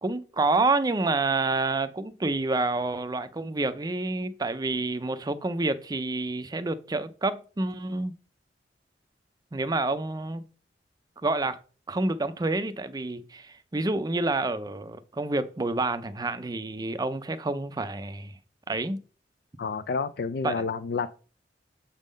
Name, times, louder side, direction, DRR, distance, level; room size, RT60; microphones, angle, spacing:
voice 1, 0.0-8.1 9.5-10.4 11.2-11.6 11.9-18.4 18.7-19.0 20.4-20.7, right 2 dB, 20° right, 0.5 m, -28 dB
voice 2, 19.6-21.1, left 5 dB, 60° left, 0.4 m, -29 dB
7.3 x 3.6 x 5.2 m
head